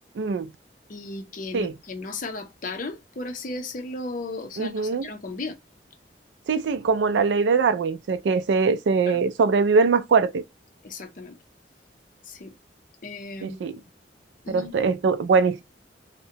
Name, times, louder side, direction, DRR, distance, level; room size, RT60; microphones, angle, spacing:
voice 1, 0.2-0.5 1.5-1.7 4.6-5.1 6.5-10.4 13.4-13.8 14.5-15.6, right 4 dB, 75° right, 0.3 m, -22 dB
voice 2, 0.9-5.6 9.1-9.2 10.8-11.4 12.2-12.5 13.0-13.6 14.4-14.7, left 2 dB, 50° left, 0.6 m, -35 dB
2.7 x 2.1 x 2.7 m
head